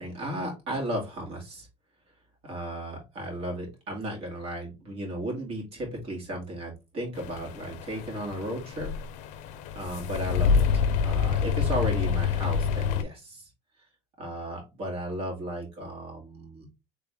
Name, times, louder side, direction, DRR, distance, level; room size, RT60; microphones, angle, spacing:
voice 1, 0.0-1.7 2.4-8.9 9.7-13.5 14.2-16.7, right 1 dB, 45° right, -1 dB, 2.4 m, -35 dB
sound 1, 7.2-13.0, left 6 dB, 60° left, 0.6 m, -27 dB
3.8 x 3.4 x 3.4 m, 0.26 s
cardioid pair, 135°, 14 cm